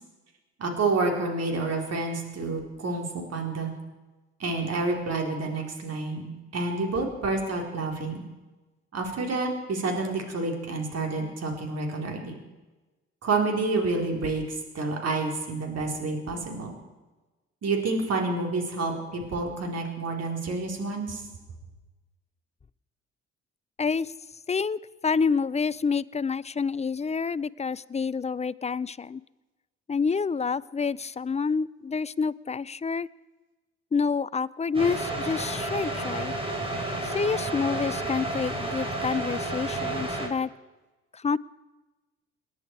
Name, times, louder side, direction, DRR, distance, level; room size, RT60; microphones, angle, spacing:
voice 1, 0.6-3.7 4.4-8.2 8.9-12.4 13.2-16.8 17.6-21.2, right 3 dB, 50° right, 2 dB, 4.4 m, -29 dB
voice 2, 23.8-24.1 24.5-29.2 29.9-33.1 33.9-36.3 37.0-40.5 41.1-41.4, left 5 dB, 20° left, 21 dB, 0.5 m, -28 dB
sound 1, 34.7-40.3, right 2 dB, 15° right, 4.5 m, -31 dB
28.0 x 11.0 x 4.8 m, 1.2 s
hypercardioid pair, 50°, 33 cm